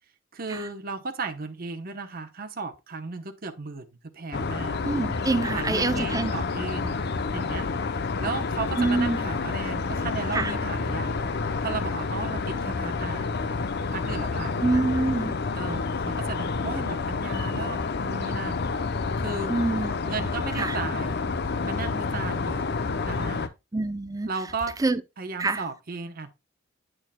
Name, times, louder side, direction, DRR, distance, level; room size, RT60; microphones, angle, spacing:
voice 1, 0.3-4.8 5.5-7.0 7.3-7.7 8.2-11.2 11.6-13.6 13.9-14.8 15.6-18.6 19.2-19.5 20.1-21.2 21.6-22.6 23.1-23.5 24.3-24.8 25.2-26.3, right 4 dB, 50° right, 0.9 m, -35 dB
sound 1, 4.3-23.5, left 4 dB, 55° left, 0.7 m, -29 dB
voice 2, 4.8-6.3 8.8-9.2 10.3-10.5 14.6-15.4 19.5-19.9 20.6-20.8 23.7-24.3 24.8-25.0 25.4-25.6, right 2 dB, 20° right, 0.5 m, -25 dB
9.1 x 6.2 x 2.2 m
head